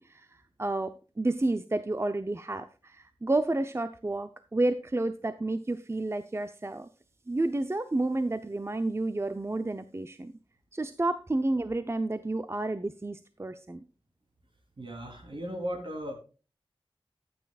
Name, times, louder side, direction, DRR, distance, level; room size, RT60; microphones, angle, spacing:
voice 1, 0.0-6.9 7.3-10.3 10.7-13.8, right 2 dB, 25° right, 11 dB, 0.6 m, -30 dB
voice 2, 14.8-16.1, equal, 60° right, 2 dB, 3.5 m, -36 dB
13.5 x 8.7 x 2.4 m, 0.35 s
wide cardioid pair, 65°, 10 cm